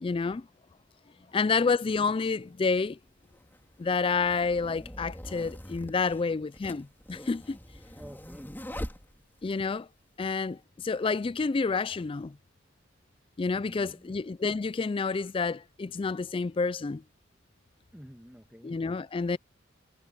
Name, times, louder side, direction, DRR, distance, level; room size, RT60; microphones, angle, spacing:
voice 1, 0.0-0.5 1.3-3.0 3.8-7.6 9.4-9.9 10.2-12.4 13.4-17.0 18.6-19.4, left 4 dB, 25° left, 0.3 m, -29 dB
sound 1, 2.2-2.3 3.2-9.7, equal, 10° left, 3.1 m, -43 dB
voice 2, 7.9-8.9 13.5-14.1 17.9-18.8, equal, 5° right, 1.9 m, -50 dB
head